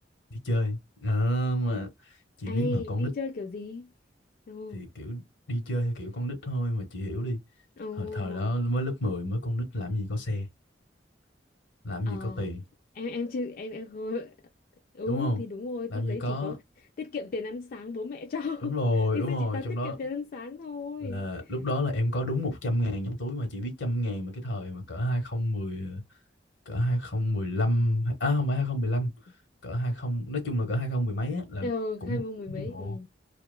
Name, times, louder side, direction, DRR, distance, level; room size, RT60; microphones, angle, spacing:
voice 1, 0.3-1.9 2.4-3.1 4.7-5.2 5.5-7.4 8.0-10.5 11.8-12.6 15.1-15.4 15.9-16.5 18.6-19.9 21.0-26.0 26.7-29.1 29.6-31.7 32.0-32.2 32.5-33.0, left 1 dB, 80° left, 1.0 m, -29 dB
voice 2, 2.5-3.9 4.5-4.8 7.8-8.5 12.1-12.5 13.0-14.3 14.9-16.6 17.0-21.3 31.6-33.1, left 3 dB, 50° left, 0.4 m, -35 dB
2.8 x 2.3 x 2.2 m
head